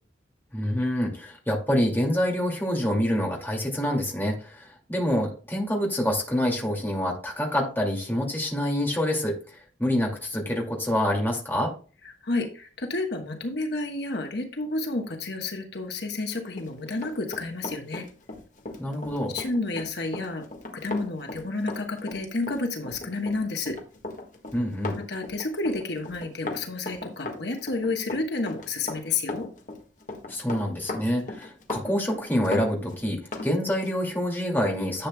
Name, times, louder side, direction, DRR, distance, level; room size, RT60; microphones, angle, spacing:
voice 1, 0.5-9.4 9.8-11.7 18.8-19.4 24.5-25.0 30.3-35.1, equal, 10° left, -1 dB, 2.2 m, -26 dB
voice 2, 12.0-18.1 19.3-20.4 20.7-23.8 24.9-29.5, left 3 dB, 65° left, 4 dB, 1.2 m, -30 dB
Run, 16.5-33.5 33.8-34.0, left 2 dB, 40° left, 1.5 m, -37 dB
11.0 x 7.7 x 2.2 m, 0.37 s
head